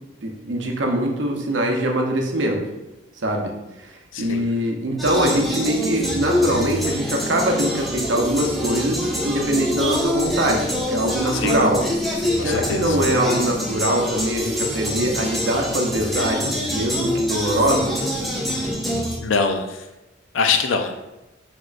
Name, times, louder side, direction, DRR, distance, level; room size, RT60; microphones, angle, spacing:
voice 1, 0.2-2.6 3.2-3.5 3.8-11.8 12.1-18.2, right 1 dB, 70° right, 2 dB, 0.7 m, -23 dB
voice 2, 4.1-4.5 11.3-11.6 12.4-13.0 19.2-19.8 20.3-20.9, left 5 dB, 80° left, 7 dB, 0.5 m, -23 dB
sound 1, 5.0-19.2, equal, ahead, 0.6 m, -25 dB
5.1 x 3.6 x 2.5 m, 0.98 s
head